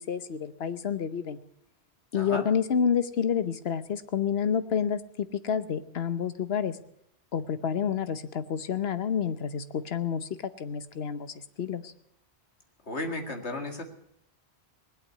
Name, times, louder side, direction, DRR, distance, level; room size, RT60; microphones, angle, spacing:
voice 1, 0.0-1.4 2.1-5.0 5.4-6.8 7.3-10.3 10.6-11.9, left 7 dB, 70° left, 12 dB, 1.1 m, -29 dB
voice 2, 2.1-2.4 12.8-13.8, left 2 dB, 85° left, 4 dB, 2.4 m, -34 dB
20.0 x 8.4 x 8.5 m, 0.76 s
omnidirectional pair, 1.1 m